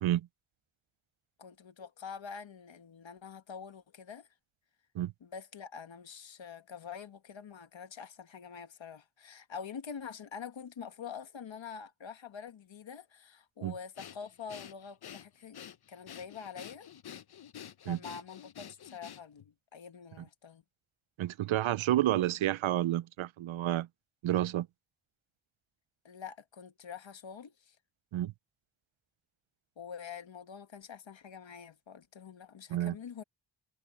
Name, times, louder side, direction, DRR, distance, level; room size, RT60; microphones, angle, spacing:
voice 1, 1.4-4.3 5.2-15.6 15.9-16.8 17.9-20.6 26.0-27.8 29.8-33.2, left 6 dB, 75° left, 1.6 m, -46 dB
Breathing, 14.0-19.5, left 9 dB, 55° left, 0.7 m, -49 dB
voice 2, 21.2-23.9 24.2-24.7 28.1-28.3 32.7-32.9, right 13 dB, 90° right, 0.5 m, -30 dB
wide cardioid pair, 110°, 46 cm